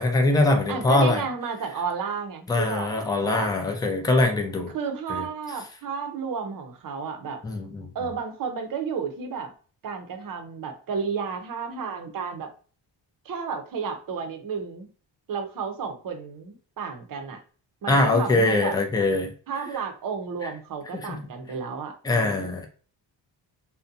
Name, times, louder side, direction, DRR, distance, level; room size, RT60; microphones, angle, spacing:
voice 1, 0.0-1.2 2.5-4.7 5.1-5.2 7.4-7.9 17.9-19.3 21.1-21.2 22.0-22.7, left 2 dB, 10° left, 4 dB, 0.3 m, -22 dB
voice 2, 0.7-3.5 4.7-7.4 7.9-9.5 9.8-12.5 13.2-14.9 15.3-17.4 17.8-18.7 19.5-22.6, right 6 dB, 50° right, 5 dB, 0.6 m, -32 dB
2.5 x 2.1 x 2.5 m, 0.40 s
wide cardioid pair, 130°, 45 cm